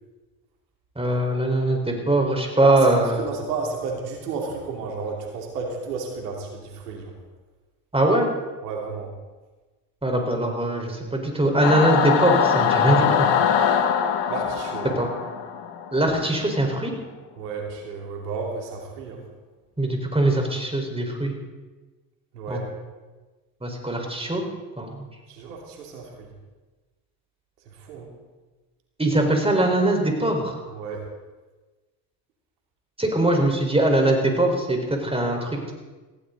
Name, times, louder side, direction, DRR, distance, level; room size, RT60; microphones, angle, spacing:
voice 1, 1.0-3.3 7.9-8.3 10.0-13.3 15.0-15.1 15.9-16.9 19.8-21.3 22.5-22.6 23.6-24.4 24.8-25.0 29.0-30.6 33.0-35.7, right 1 dB, 10° right, 2 dB, 4.6 m, -22 dB
voice 2, 2.6-7.1 8.6-9.1 12.8-13.0 14.3-14.9 17.4-19.2 22.3-22.7 25.3-26.3 27.7-28.1 30.7-31.0, right 4 dB, 85° right, 1 dB, 3.1 m, -32 dB
Singing / Musical instrument, 11.6-16.3, left 8 dB, 65° left, 1.6 m, -22 dB
18.5 x 16.0 x 4.0 m, 1.2 s
hypercardioid pair, 55°, 46 cm